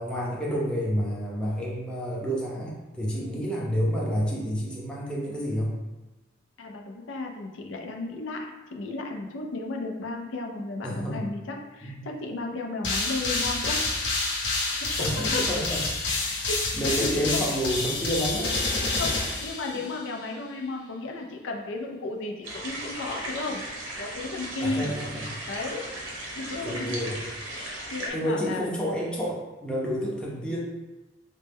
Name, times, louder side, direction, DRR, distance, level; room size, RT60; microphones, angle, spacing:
voice 1, 0.0-5.7 10.8-11.2 11.8-12.1 15.0-16.4 16.7-19.1 19.7-19.9 24.6-25.3 26.5-27.2 28.1-30.6, equal, 5° left, -5 dB, 0.6 m, -30 dB
voice 2, 6.6-13.8 14.7-15.4 16.1-16.7 17.0-17.4 18.8-23.6 24.0-25.0 25.5-25.9 26.3-27.0 27.5-28.7, left 3 dB, 80° left, 1 dB, 0.5 m, -34 dB
sound 1, 12.8-20.1, left 2 dB, 65° left, 0.8 m, -28 dB
sound 2, 22.4-28.1, right 1 dB, 90° right, 0.9 m, -37 dB
4.1 x 2.2 x 3.4 m, 1.1 s
head